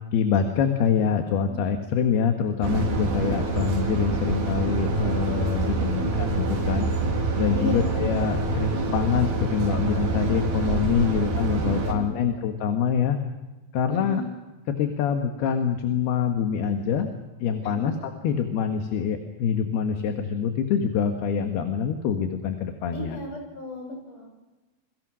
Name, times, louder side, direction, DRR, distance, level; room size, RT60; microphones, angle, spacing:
voice 1, 0.0-6.0 6.3-6.9 7.4-13.2 13.7-14.2 14.8-17.1 17.4-17.9 18.2-23.2, left 7 dB, 70° left, 5 dB, 3.4 m, -25 dB
sound 1, 2.6-11.9, right 3 dB, 60° right, 5.0 m, -26 dB
voice 2, 7.5-8.0 11.1-12.3 13.9-14.3 17.6-17.9 22.9-24.3, left 1 dB, 45° left, 2 dB, 7.9 m, -35 dB
28.5 x 23.0 x 6.3 m, 1.1 s
omnidirectional pair, 5.0 m